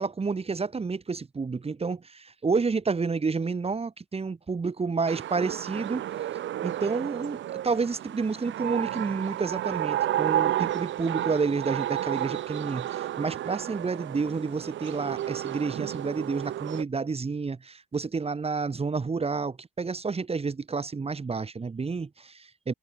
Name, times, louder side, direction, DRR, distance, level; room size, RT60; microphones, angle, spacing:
voice 1, 0.0-6.0 6.6-22.7, right 4 dB, 30° right, 3.1 m, -30 dB
sound 1, 5.1-16.8, right 12 dB, 70° right, 1.2 m, -32 dB
cardioid pair, 90°, 20 cm